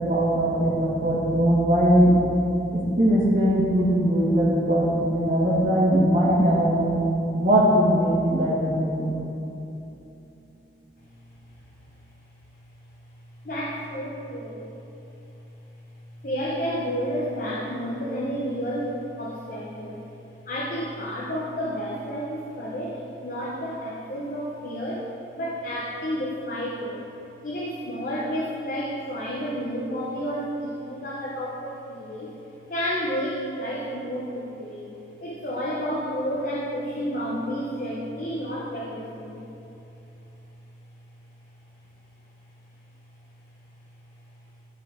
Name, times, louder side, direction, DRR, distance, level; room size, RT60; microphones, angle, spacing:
voice 1, 0.0-2.1 2.7-7.0 7.3-9.1, equal, 50° right, -10 dB, 2.0 m, -20 dB
voice 2, 13.4-14.6 16.2-20.1 20.5-27.0 27.4-32.4 32.7-39.4, equal, 45° left, -5 dB, 0.9 m, -31 dB
13.0 x 4.8 x 3.8 m, 3.0 s
head